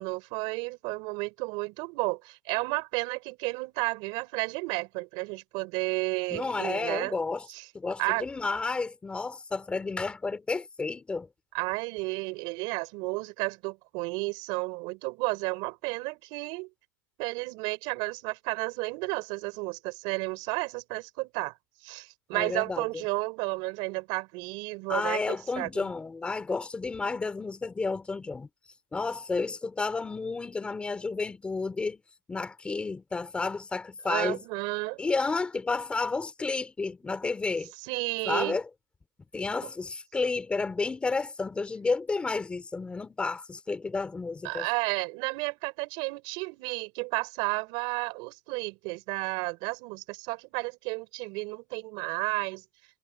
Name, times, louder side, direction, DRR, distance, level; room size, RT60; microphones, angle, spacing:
voice 1, 0.0-7.2 7.5-7.6 8.0-8.3 11.5-16.7 17.2-21.5 21.8-25.9 34.1-35.0 37.8-38.6 44.4-52.6, right 28 dB, 50° right, 5.7 m, -32 dB
voice 2, 6.3-7.5 7.7-11.3 22.3-22.8 24.9-28.5 28.9-32.0 32.3-34.4 35.0-37.7 38.3-38.7 39.3-44.7, left 4 dB, 10° left, 3.9 m, -31 dB
supercardioid pair, 155°, 10 cm